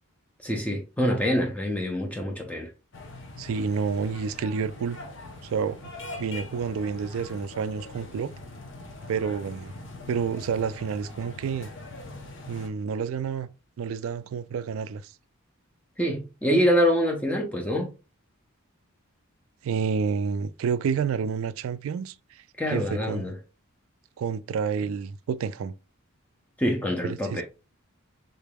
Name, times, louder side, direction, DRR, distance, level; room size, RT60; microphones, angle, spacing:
voice 1, 0.4-2.7 16.0-17.9 22.6-23.4 26.6-27.4, equal, 5° left, 0.5 m, -25 dB
sound 1, 2.9-12.7, left 2 dB, 55° left, 0.7 m, -42 dB
voice 2, 3.4-5.0 5.4-5.8 6.2-8.3 9.1-9.7 10.1-11.7 12.5-13.5 13.8-15.0 19.6-22.1 22.7-23.3 24.2-25.7 27.0-27.4, right 6 dB, 70° right, 0.3 m, -29 dB
3.9 x 3.4 x 2.2 m
head